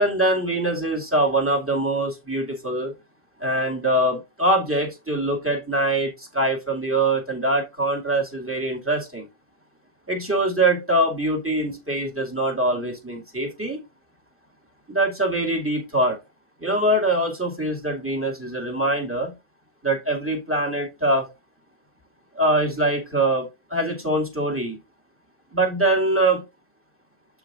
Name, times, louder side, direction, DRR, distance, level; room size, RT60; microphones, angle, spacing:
voice 1, 0.0-2.9 3.4-9.3 10.1-13.8 14.9-16.2 16.6-19.3 19.8-21.3 22.3-24.8 25.5-26.4, right 1 dB, 10° right, 2.2 m, -23 dB
12.0 x 4.7 x 2.5 m
omnidirectional pair, 1.8 m